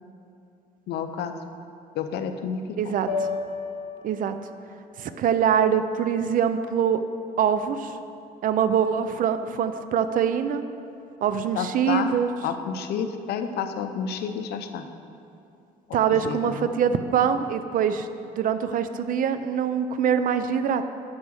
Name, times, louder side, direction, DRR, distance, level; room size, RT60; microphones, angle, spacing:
voice 1, 0.9-1.3 1.9-3.0 11.5-12.1 12.4-14.9 15.9-16.7, left 7 dB, 75° left, 8 dB, 0.7 m, -30 dB
voice 2, 2.8-3.1 4.0-4.3 5.0-7.0 7.4-8.0 8.4-10.6 11.2-12.3 15.9-18.1 18.3-20.8, right 8 dB, 55° right, 10 dB, 0.5 m, -24 dB
sound 1, 3.1-7.3, left 4 dB, 55° left, 1.3 m, -36 dB
9.6 x 4.8 x 6.3 m, 2.6 s
cardioid pair, 110°, 17 cm